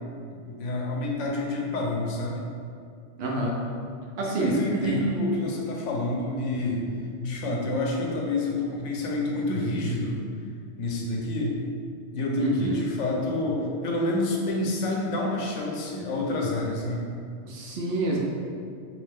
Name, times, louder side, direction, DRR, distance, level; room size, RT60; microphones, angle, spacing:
voice 1, 0.3-2.4 4.4-6.9 7.2-10.2 10.8-11.6 12.1-17.1, left 2 dB, 80° left, -1 dB, 0.9 m, -28 dB
voice 2, 3.2-3.6 4.2-5.1 12.4-12.8 17.4-18.2, right 2 dB, 65° right, -2 dB, 0.7 m, -27 dB
3.1 x 2.7 x 3.3 m, 2.3 s
omnidirectional pair, 1.2 m